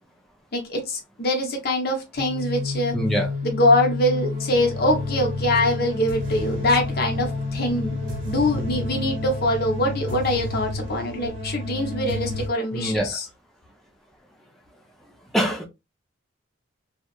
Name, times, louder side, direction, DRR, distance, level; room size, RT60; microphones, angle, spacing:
voice 1, 0.5-2.9 3.4-8.0 8.2-13.2, left 1 dB, 50° left, 0.8 m, -23 dB
sound 1, 2.2-12.5, left 2 dB, 55° right, 1.4 m, -29 dB
voice 2, 2.9-3.3 12.7-13.1 15.3-15.7, equal, ahead, 0.5 m, -24 dB
2.8 x 2.3 x 2.3 m
head